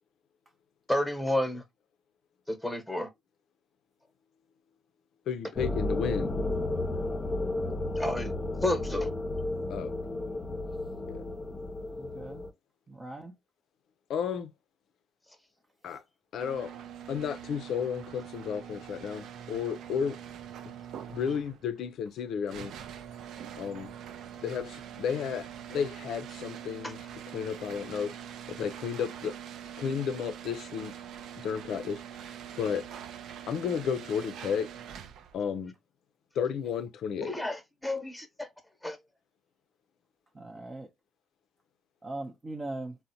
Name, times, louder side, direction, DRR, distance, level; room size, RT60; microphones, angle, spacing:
voice 1, 0.9-1.6 2.5-3.1 8.0-8.3 8.6-9.1 26.8-26.9 37.2-38.5 38.8-39.0, left 1 dB, 5° left, 0.9 m, -30 dB
voice 2, 5.3-6.3 9.7-9.9 11.1-11.2 14.1-14.5 15.8-16.0 16.3-16.7 17.1-20.2 21.1-22.7 23.6-23.9 24.4-27.0 27.3-28.1 28.5-29.4 29.8-30.9 31.4-32.0 32.6-32.9 33.5-34.7 35.3-35.7 36.4-37.3, left 7 dB, 70° left, 0.4 m, -32 dB
sound 1, 5.6-12.5, left 2 dB, 30° left, 0.6 m, -33 dB
voice 3, 12.0-12.4 12.9-13.3 15.9-16.0 23.4-23.5 40.3-40.9 42.0-43.0, right 2 dB, 30° right, 0.6 m, -40 dB
sound 2, 16.4-35.4, right 9 dB, 75° right, 0.3 m, -44 dB
3.8 x 2.1 x 2.6 m
supercardioid pair, 70°, 0 cm